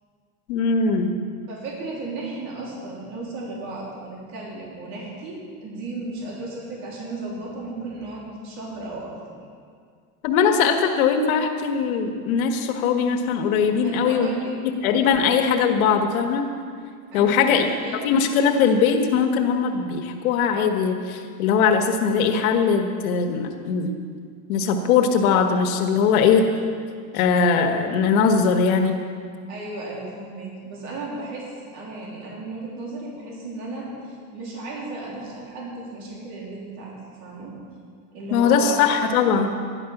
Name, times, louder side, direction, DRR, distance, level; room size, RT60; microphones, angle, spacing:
voice 1, 0.5-1.2 10.2-14.3 14.6-16.5 17.1-17.7 18.0-24.0 24.5-26.5 27.1-29.0 38.3-39.6, left 6 dB, 85° left, 4 dB, 1.5 m, -20 dB
voice 2, 1.5-9.1 13.8-14.5 17.1-18.2 29.5-36.9 37.2-37.5 38.1-38.8, right 2 dB, 40° right, -4 dB, 3.4 m, -34 dB
12.5 x 11.0 x 5.9 m, 2.1 s
supercardioid pair, 170°, 41 cm